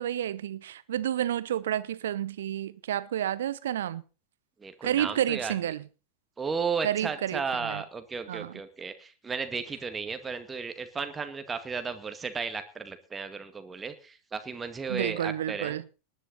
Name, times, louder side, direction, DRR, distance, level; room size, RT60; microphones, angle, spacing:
voice 1, 0.0-4.0 4.8-5.8 6.8-7.8 8.3-8.6 14.9-15.8, right 11 dB, 60° right, 0.9 m, -30 dB
voice 2, 4.6-5.5 6.4-15.8, right 5 dB, 15° right, 2.0 m, -34 dB
19.5 x 11.0 x 4.0 m
figure-of-eight pair, 90°, 0 cm